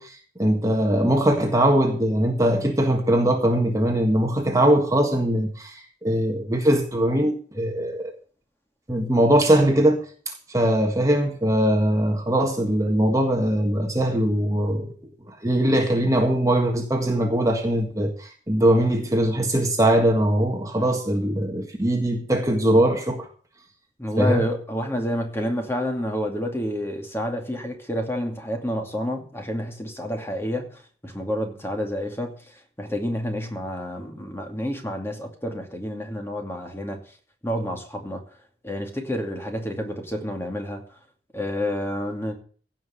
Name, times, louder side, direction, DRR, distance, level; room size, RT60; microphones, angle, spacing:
voice 1, 0.0-8.1 8.9-14.9 15.3-23.3 24.2-24.4, right 1 dB, 20° right, 1.7 m, -21 dB
voice 2, 24.0-30.7 31.0-32.3 32.8-37.0 37.4-38.2 38.6-40.8 41.3-42.3, equal, 15° left, 2.5 m, -29 dB
16.0 x 6.0 x 8.4 m
head